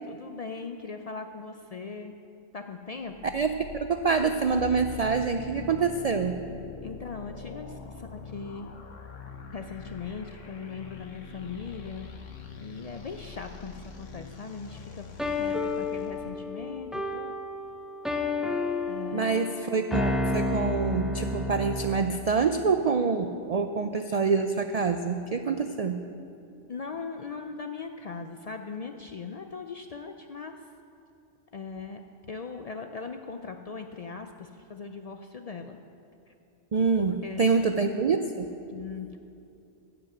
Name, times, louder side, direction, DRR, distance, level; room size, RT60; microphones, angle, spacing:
voice 1, 0.1-2.1 2.5-3.3 6.8-8.7 9.5-12.1 12.6-15.1 15.4-17.4 18.9-19.4 26.7-30.5 31.5-32.0 32.3-35.8 37.0-37.7 38.7-39.2, left 5 dB, 70° left, 5 dB, 0.3 m, -39 dB
sound 1, 3.0-16.3, left 5 dB, 90° left, 1.4 m, -44 dB
voice 2, 3.3-6.4 19.1-26.0 36.7-38.5, right 5 dB, 85° right, 7 dB, 0.3 m, -26 dB
sound 2, 15.2-22.1, left 2 dB, ahead, 0.4 m, -31 dB
14.5 x 5.9 x 7.8 m, 2.6 s
omnidirectional pair, 1.2 m